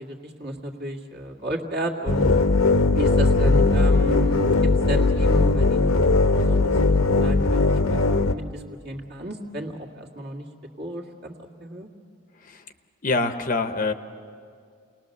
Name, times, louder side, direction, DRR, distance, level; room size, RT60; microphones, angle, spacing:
voice 1, 0.0-2.3 2.9-4.6 4.9-7.6 7.9-10.5 10.8-11.9, right 1 dB, 50° right, -1 dB, 2.2 m, -32 dB
sound 1, 2.1-8.3, left 3 dB, 75° left, 0.9 m, -19 dB
voice 2, 13.0-13.9, left 3 dB, 40° left, 8 dB, 0.8 m, -25 dB
29.5 x 19.5 x 6.7 m, 2.2 s
head